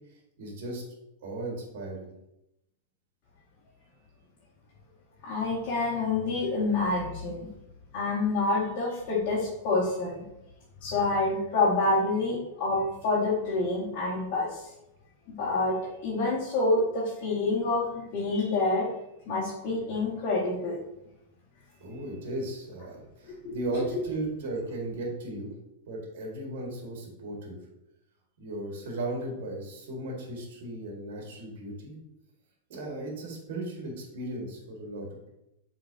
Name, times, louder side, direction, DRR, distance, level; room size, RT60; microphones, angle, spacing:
voice 1, 0.4-0.8 1.2-2.1 21.8-25.5 25.9-27.6 28.4-32.0 32.7-35.3, right 1 dB, 65° right, -1 dB, 1.9 m, -36 dB
voice 2, 5.2-7.5 7.9-10.2 10.8-14.6 15.3-15.8 16.0-18.9 19.3-20.8 23.3-23.9, left 3 dB, 40° left, -9 dB, 2.1 m, -27 dB
8.2 x 4.1 x 2.8 m, 0.87 s
supercardioid pair, 150°, 0 cm